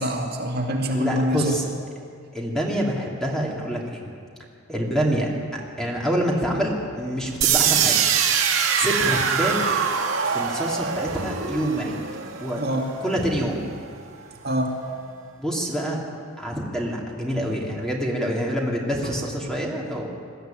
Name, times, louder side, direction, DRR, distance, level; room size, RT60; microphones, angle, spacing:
voice 1, 0.0-1.6 12.6-12.9 14.4-14.8, equal, 50° right, 0 dB, 2.3 m, -25 dB
voice 2, 0.9-1.7 2.3-4.1 4.7-8.0 8.8-9.6 10.2-12.0 12.4-12.6 13.0-13.6 15.4-16.0 16.4-20.1, equal, 5° left, -2 dB, 2.7 m, -26 dB
sound 1, 7.4-13.3, right 7 dB, 65° right, 1.8 m, -23 dB
21.5 x 13.5 x 9.0 m, 2.2 s
head